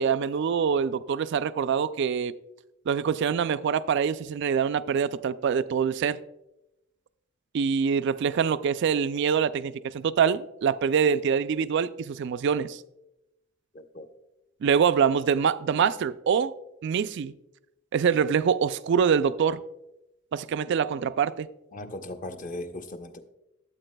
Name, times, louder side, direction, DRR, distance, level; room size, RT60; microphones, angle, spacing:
voice 1, 0.0-2.3 2.9-6.2 7.5-12.8 14.6-16.5 16.8-17.3 17.9-19.6 20.3-21.5, right 7 dB, 60° right, 0.3 m, -25 dB
voice 2, 13.7-14.1 21.7-23.2, left 1 dB, 40° left, 0.7 m, -38 dB
13.0 x 8.1 x 2.2 m
head